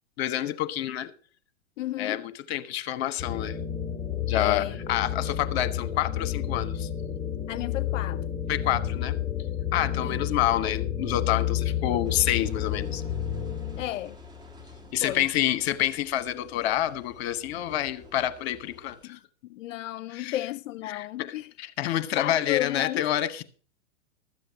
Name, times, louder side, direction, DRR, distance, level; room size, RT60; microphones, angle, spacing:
voice 1, 0.2-1.1 2.0-3.6 4.3-6.9 8.5-9.2 9.7-13.0 14.9-19.2 20.1-20.4 20.9-23.4, left 12 dB, 55° left, 1.3 m, -28 dB
voice 2, 1.8-2.3 4.4-4.8 7.5-8.2 10.0-10.2 13.8-14.2 15.0-15.3 19.0-21.5 22.2-23.1, left 14 dB, 85° left, 0.5 m, -33 dB
sound 1, 3.2-13.8, left 10 dB, 15° left, 1.4 m, -30 dB
Engine, 12.0-19.0, left 3 dB, 10° right, 2.0 m, -49 dB
13.0 x 7.6 x 6.1 m
hypercardioid pair, 130°, 38 cm